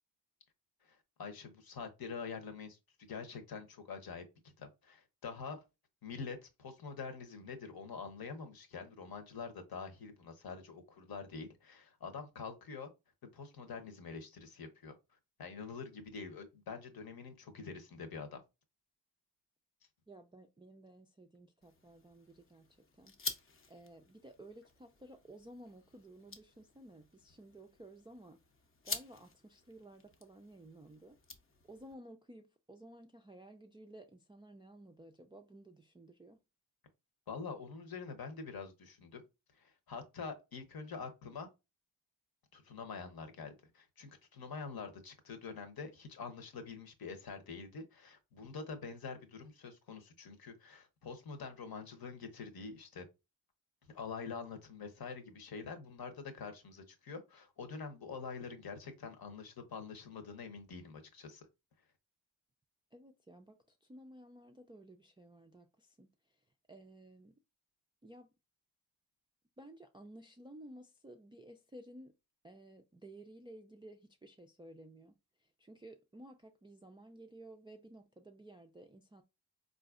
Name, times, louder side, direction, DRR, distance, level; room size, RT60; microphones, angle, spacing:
voice 1, 0.8-5.6 6.0-12.9 13.3-14.9 15.4-18.4 37.3-39.2 39.5-41.5 42.5-53.0 53.8-61.5, left 5 dB, 50° left, 0.9 m, -46 dB
voice 2, 20.1-22.7 23.0-23.1 23.7-28.4 28.8-31.2 31.7-36.4 62.9-63.6 63.9-65.7 66.0-66.1 66.7-67.3 68.0-68.3 69.6-72.1 72.4-75.1 75.6-79.2, right 1 dB, 10° right, 0.3 m, -54 dB
sound 1, 21.6-31.9, left 4 dB, 30° left, 0.6 m, -48 dB
3.9 x 2.5 x 2.4 m
supercardioid pair, 50°, 46 cm